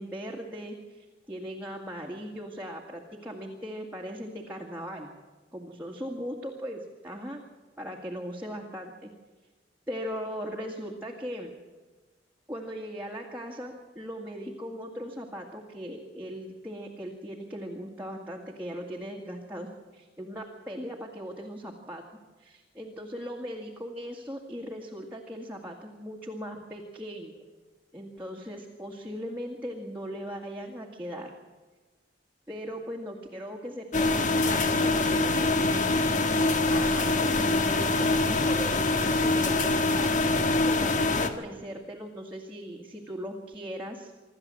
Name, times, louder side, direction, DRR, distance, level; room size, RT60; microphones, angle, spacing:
voice 1, 0.0-5.1 5.5-7.5 7.8-9.1 9.9-11.6 12.5-22.0 22.4-27.4 27.9-31.3 32.5-36.0 36.7-40.1 40.6-44.1, equal, 10° right, -2 dB, 2.0 m, -39 dB
sound 1, 33.9-41.3, left 2 dB, 45° left, 1.6 m, -24 dB
26.0 x 13.0 x 7.7 m, 1.3 s
head